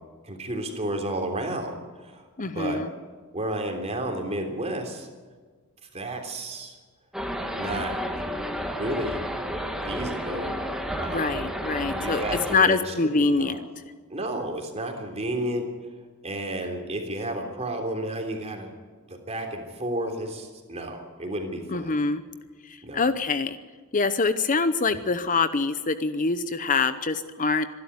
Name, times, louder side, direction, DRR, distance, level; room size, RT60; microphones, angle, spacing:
voice 1, 0.2-2.8 3.3-5.1 5.9-6.8 7.5-8.0 8.8-9.2 9.8-10.5 11.0-11.4 11.8-13.6 14.1-15.7 16.2-18.7 19.1-22.0 22.8-23.1, right 1 dB, 30° right, 4 dB, 3.4 m, -32 dB
voice 2, 2.4-2.9 11.1-12.2 12.5-13.6 21.7-22.2 22.6-23.6 23.9-27.6, left 4 dB, 35° left, 12 dB, 0.8 m, -24 dB
sound 1, 7.1-12.6, equal, ahead, 1.9 m, -31 dB
25.5 x 12.0 x 9.5 m, 1.5 s
head